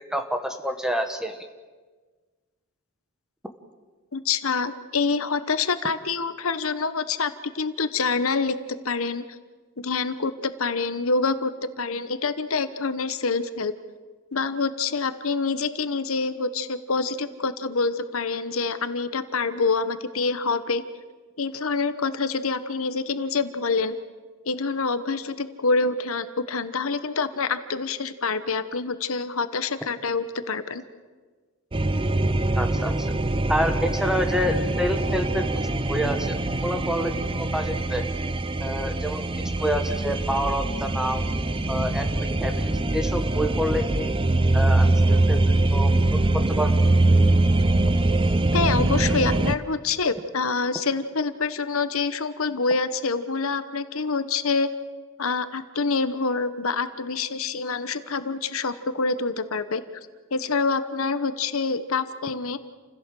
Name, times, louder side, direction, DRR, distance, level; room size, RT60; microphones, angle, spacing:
voice 1, 0.0-1.5 32.6-33.1 33.5-38.0 38.6-41.2 41.7-44.1 44.5-45.4 45.7-46.7, equal, 5° right, 6 dB, 1.3 m, -28 dB
voice 2, 4.1-8.6 8.8-9.2 9.8-11.5 11.8-13.7 14.3-20.8 21.4-24.0 24.5-30.8 48.5-54.7 55.2-59.8 60.3-62.6, left 4 dB, 75° left, 12 dB, 1.1 m, -26 dB
sound 1, 31.7-49.6, right 2 dB, 25° right, 0.6 m, -23 dB
28.5 x 16.0 x 7.7 m, 1.4 s
head